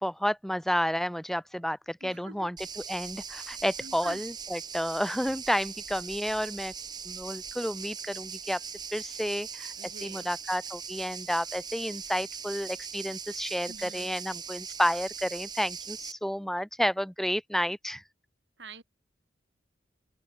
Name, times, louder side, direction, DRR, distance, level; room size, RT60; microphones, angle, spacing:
voice 1, 0.0-6.7 7.0-8.6 8.9-18.0, equal, ahead, 1.2 m, -31 dB
voice 2, 2.0-2.5 3.8-4.2 9.8-10.3 13.7-14.2 18.6-18.8, right 3 dB, 85° right, 4.5 m, -46 dB
sound 1, 2.6-16.1, right 6 dB, 25° right, 3.0 m, -40 dB
head